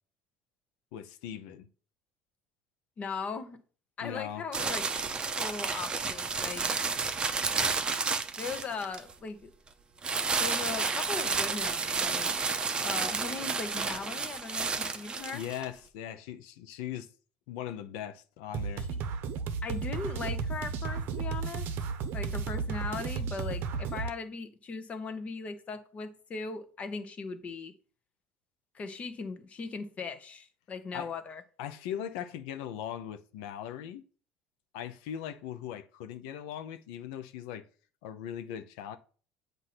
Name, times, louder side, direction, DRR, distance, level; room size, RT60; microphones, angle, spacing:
voice 1, 0.9-1.7 4.0-4.4 15.3-17.1 17.5-18.9 30.9-31.1 31.6-34.0 34.7-37.6 38.0-39.0, left 10 dB, 85° left, 0.7 m, -39 dB
voice 2, 3.0-3.6 4.0-4.9 5.4-6.6 8.4-9.5 10.4-12.3 12.8-15.4 18.9-19.0 19.6-21.7 22.1-27.7 28.7-31.4, left 4 dB, 30° left, 0.9 m, -38 dB
sound 1, 4.5-9.1 10.0-15.6, right 4 dB, 20° right, 0.6 m, -31 dB
sound 2, 18.5-24.1, right 5 dB, 55° right, 0.7 m, -33 dB
8.0 x 2.7 x 5.9 m
cardioid pair, 125°, 4 cm